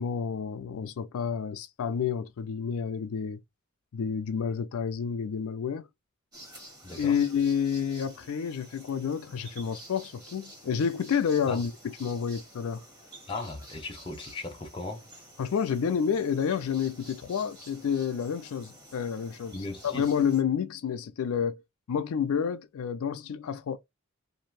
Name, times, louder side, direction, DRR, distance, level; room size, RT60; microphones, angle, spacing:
voice 1, 0.0-3.4 3.9-5.9 7.0-12.8 15.4-19.5 19.8-21.6 21.9-23.8, left 7 dB, 75° left, 0.4 m, -29 dB
sound 1, 6.3-20.4, right 1 dB, 15° right, 1.4 m, -50 dB
voice 2, 6.8-7.2 11.5-11.6 13.3-15.0 19.5-20.1, left 2 dB, 20° left, 0.7 m, -37 dB
2.6 x 2.5 x 3.2 m
head